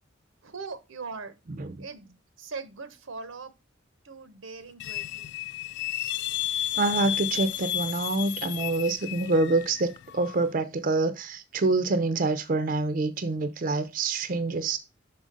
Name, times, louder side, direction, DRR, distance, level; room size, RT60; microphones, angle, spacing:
voice 1, 0.4-1.3 1.8-3.5 4.0-5.3, right 4 dB, 90° right, 0.9 m, -40 dB
sound 1, 4.8-10.4, left 13 dB, 60° left, 0.3 m, -32 dB
voice 2, 6.7-14.8, right 3 dB, 45° right, 0.5 m, -26 dB
5.8 x 5.0 x 3.8 m
head